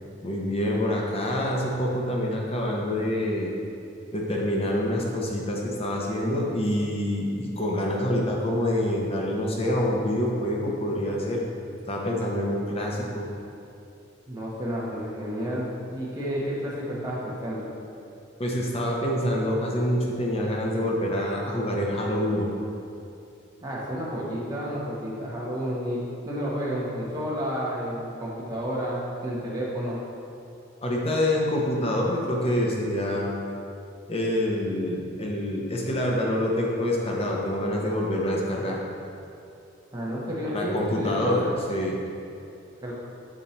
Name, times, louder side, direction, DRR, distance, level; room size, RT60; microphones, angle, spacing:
voice 1, 0.2-3.5 4.1-11.4 11.9-13.3 18.4-22.5 30.8-33.4 34.1-38.8 40.5-42.0, left 1 dB, 30° left, -2 dB, 0.9 m, -26 dB
voice 2, 14.3-17.7 23.6-26.0 26.3-30.0 39.9-41.5 42.8-42.9, equal, 20° right, -7 dB, 1.0 m, -31 dB
7.2 x 4.5 x 4.2 m, 2.7 s
head